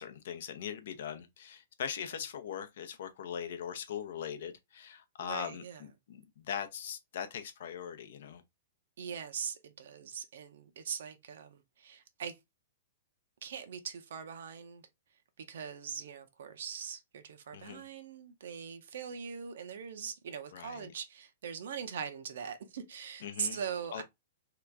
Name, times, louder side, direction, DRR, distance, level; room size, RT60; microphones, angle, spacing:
voice 1, 0.0-8.4 17.5-17.8 20.5-20.9 23.2-23.6 23.9-24.0, left 8 dB, 65° left, 0.6 m, -41 dB
voice 2, 5.2-5.8 9.0-12.3 13.4-14.8 15.5-24.0, right 7 dB, 70° right, 0.6 m, -41 dB
2.9 x 2.4 x 3.4 m
hypercardioid pair, 155°, 0 cm